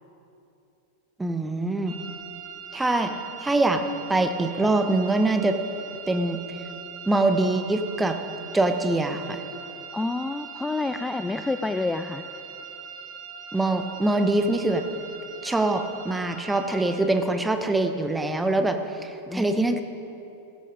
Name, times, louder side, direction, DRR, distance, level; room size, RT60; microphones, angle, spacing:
voice 1, 1.2-2.0 2.7-3.1 3.4-3.8 4.1-5.6 6.1-6.6 7.1-8.2 8.5-9.4 13.5-14.8 15.4-19.8, right 2 dB, 10° right, 7 dB, 1.0 m, -24 dB
sound 1, 1.9-17.0, right 6 dB, 30° right, 3.9 m, -41 dB
voice 2, 9.9-12.2 19.3-19.6, left 3 dB, 10° left, 9 dB, 0.4 m, -28 dB
16.0 x 12.0 x 4.9 m, 2.9 s
figure-of-eight pair, 90°, 0 cm